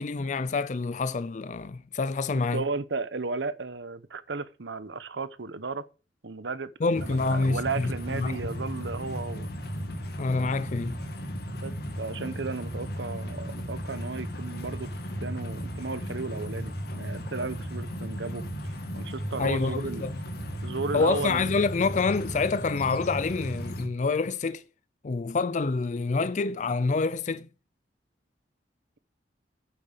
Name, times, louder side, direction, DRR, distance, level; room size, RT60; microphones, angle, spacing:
voice 1, 0.0-2.6 6.8-8.4 10.2-11.0 19.4-20.1 20.9-24.6 25.0-27.5, left 4 dB, 40° left, 0.4 m, -27 dB
voice 2, 2.5-5.9 6.2-9.5 11.6-14.9 15.2-18.4 18.9-20.0 20.6-21.7, right 4 dB, 75° right, 0.9 m, -34 dB
sound 1, 6.9-23.9, equal, 60° left, 2.2 m, -35 dB
9.2 x 7.8 x 6.5 m
head